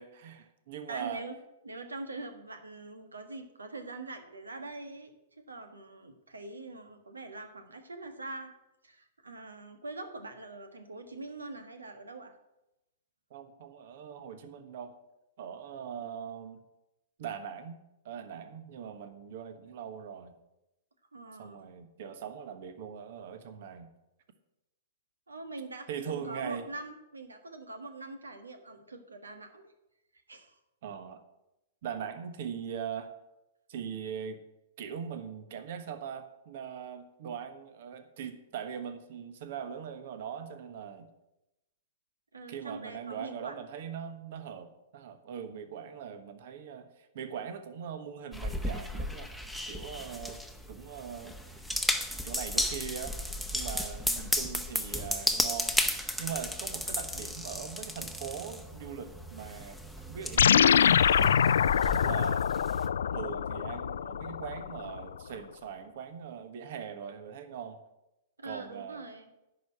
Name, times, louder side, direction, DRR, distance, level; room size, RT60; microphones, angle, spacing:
voice 1, 0.0-1.2 13.3-14.9 15.4-16.6 17.2-17.8 18.0-20.3 21.4-23.9 25.9-26.7 30.8-31.2 31.8-33.1 33.7-34.4 34.8-41.1 42.5-49.3 49.7-50.4 50.7-51.7 52.1-53.2 53.5-55.8 56.2-61.4 61.9-62.5 63.1-67.8 68.4-69.0, right 8 dB, 55° right, 9 dB, 1.2 m, -41 dB
voice 2, 0.9-1.3 1.6-5.1 5.5-8.5 8.8-12.4 21.1-21.7 25.3-29.7 30.1-30.6 42.3-43.6 68.4-69.3, right 2 dB, 85° right, 8 dB, 1.5 m, -43 dB
sound 1, 48.3-62.9, left 1 dB, ahead, 1.0 m, -34 dB
sound 2, 60.4-65.0, left 8 dB, 70° left, 0.3 m, -25 dB
11.0 x 5.2 x 8.5 m, 0.91 s
figure-of-eight pair, 110°, 0 cm